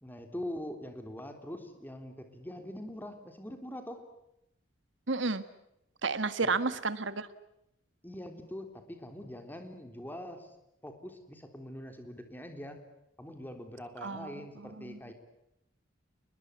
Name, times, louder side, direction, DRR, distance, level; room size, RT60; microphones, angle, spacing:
voice 1, 0.0-4.0 6.4-6.6 8.0-10.5 10.8-12.8 13.2-15.1, left 1 dB, 10° left, 6 dB, 3.6 m, -43 dB
voice 2, 5.1-5.4 6.0-7.3 14.0-15.0, right 4 dB, 65° right, 12 dB, 1.8 m, -32 dB
29.5 x 20.5 x 8.4 m, 0.84 s
head